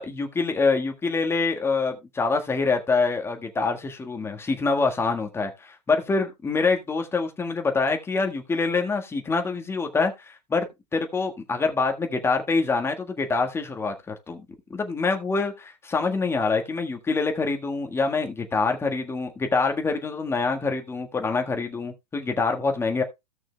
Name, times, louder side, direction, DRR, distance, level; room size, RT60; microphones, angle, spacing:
voice 1, 0.0-10.7 10.9-23.0, left 4 dB, 10° left, 1.5 m, -25 dB
16.5 x 6.2 x 2.3 m
figure-of-eight pair, 105°, 21 cm